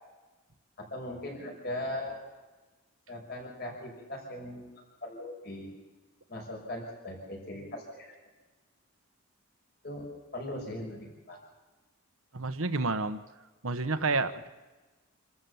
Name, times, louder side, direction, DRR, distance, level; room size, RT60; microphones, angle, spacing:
voice 1, 0.8-2.3 3.1-4.6 5.0-5.7 6.3-8.1 9.8-11.4, left 1 dB, 45° left, 0 dB, 6.0 m, -39 dB
voice 2, 12.3-13.2 13.6-14.5, right 3 dB, 70° right, 10 dB, 1.2 m, -29 dB
27.5 x 14.0 x 7.1 m, 1.2 s
head